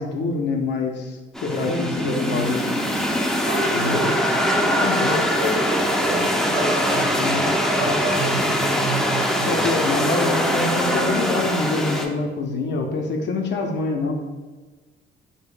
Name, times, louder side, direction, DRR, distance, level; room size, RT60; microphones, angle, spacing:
voice 1, 0.0-2.6 3.7-4.0 4.8-5.2 7.1-7.5 9.5-14.1, left 3 dB, 60° left, 2 dB, 0.5 m, -25 dB
sound 1, 1.3-12.0, equal, 5° left, 0.4 m, -22 dB
voice 2, 1.6-2.3 3.4-7.2 7.8-9.7, right 1 dB, 45° right, 0 dB, 0.9 m, -29 dB
3.4 x 2.0 x 3.7 m, 1.3 s
cardioid pair, 90°, 20 cm